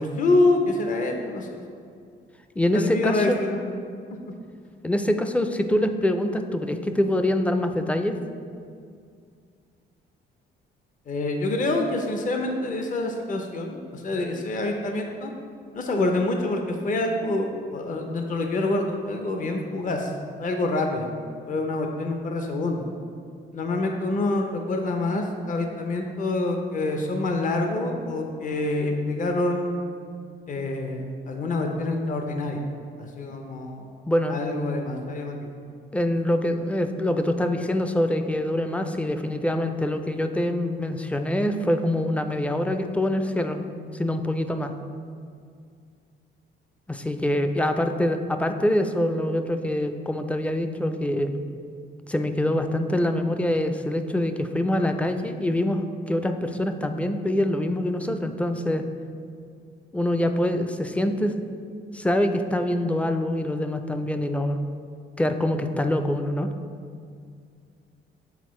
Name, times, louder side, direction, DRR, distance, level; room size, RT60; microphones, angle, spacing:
voice 1, 0.0-1.5 2.7-3.7 11.1-15.3 15.7-20.1 20.4-21.1 21.5-22.9 23.5-29.7 30.5-32.6 33.0-33.9 34.3-35.5, left 2 dB, 40° left, 3 dB, 0.6 m, -26 dB
voice 2, 2.6-3.4 4.8-8.2 34.1-34.4 35.9-43.7 43.9-44.7 46.9-51.3 52.1-58.8 59.9-61.3 61.9-64.6 65.2-66.5, left 1 dB, 5° left, 7 dB, 0.4 m, -25 dB
8.1 x 4.1 x 3.1 m, 2.3 s
cardioid pair, 90°, 20 cm